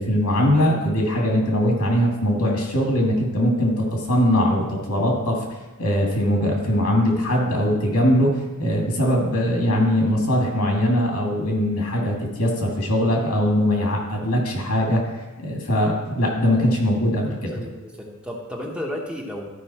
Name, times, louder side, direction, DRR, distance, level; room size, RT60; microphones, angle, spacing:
voice 1, 0.0-5.4 5.8-15.0 15.4-17.5, equal, 90° left, 0 dB, 2.3 m, -21 dB
voice 2, 17.5-19.5, equal, 5° right, -1 dB, 0.9 m, -33 dB
12.5 x 5.3 x 4.2 m, 1.1 s
head